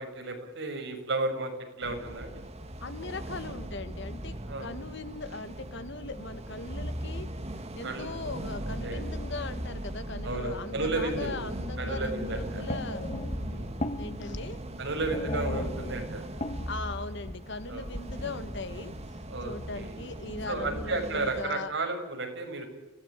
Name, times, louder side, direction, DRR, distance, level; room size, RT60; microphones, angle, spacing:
voice 1, 0.0-2.4 4.5-4.7 7.8-8.1 8.8-9.0 10.2-11.4 11.8-12.6 13.4-13.7 14.8-16.2 17.7-17.8 19.3-19.9 20.5-22.7, right 2 dB, 65° right, 3 dB, 6.6 m, -33 dB
Wind blowing gusting through french castle tower, 1.8-21.5, right 1 dB, 35° right, 2.2 m, -38 dB
voice 2, 2.8-13.1 14.0-14.6 16.7-21.7, left 3 dB, 65° left, 11 dB, 1.9 m, -39 dB
sound 1, 11.7-18.9, left 1 dB, 35° left, 1.3 m, -37 dB
30.0 x 16.5 x 9.8 m, 1.0 s
head